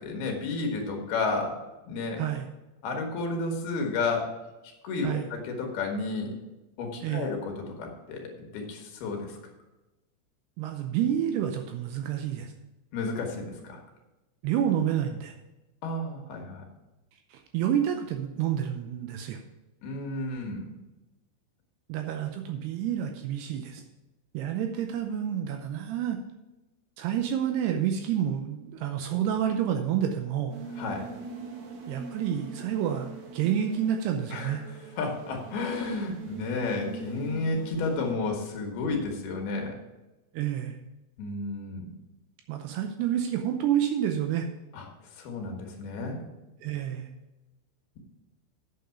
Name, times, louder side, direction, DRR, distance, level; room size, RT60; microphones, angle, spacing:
voice 1, 0.0-1.6 1.9-2.2 2.8-4.3 4.8-6.3 6.8-9.4 12.9-13.8 15.8-16.6 19.8-20.7 30.8-31.1 34.3-34.6 35.0-39.8 41.2-41.9 44.7-44.9 45.1-46.2, left 3 dB, 65° left, 2 dB, 3.1 m, -32 dB
voice 2, 10.6-12.5 14.4-15.3 17.3-19.4 21.9-23.8 24.3-26.2 27.0-30.5 31.9-34.6 40.3-40.8 42.5-44.5 46.6-47.1, right 9 dB, 80° right, 5 dB, 2.4 m, -29 dB
sound 1, 30.5-38.1, right 4 dB, 65° right, 3.3 m, -42 dB
8.5 x 7.7 x 5.8 m, 1.0 s
omnidirectional pair, 5.3 m